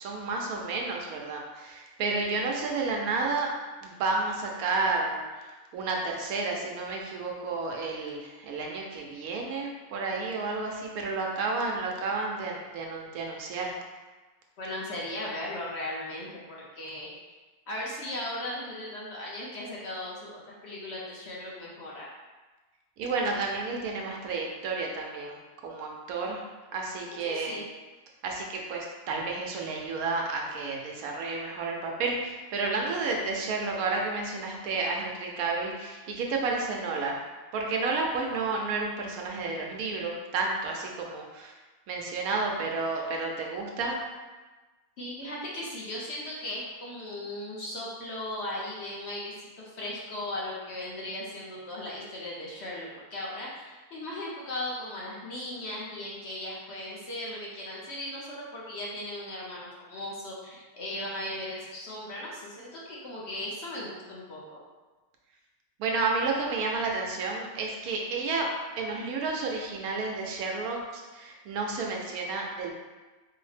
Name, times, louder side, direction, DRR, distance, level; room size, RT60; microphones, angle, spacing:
voice 1, 0.0-3.5 3.8-13.7 23.0-26.4 26.7-27.6 28.2-37.2 37.5-41.5 41.9-44.0 65.8-68.5 68.8-72.7, right 3 dB, 80° right, 0 dB, 1.1 m, -31 dB
voice 2, 14.6-16.4 16.8-17.1 17.7-22.1 27.1-27.7 45.0-49.3 49.6-64.6, left 1 dB, 60° left, -5 dB, 0.8 m, -37 dB
4.7 x 2.0 x 3.2 m, 1.2 s
omnidirectional pair, 1.5 m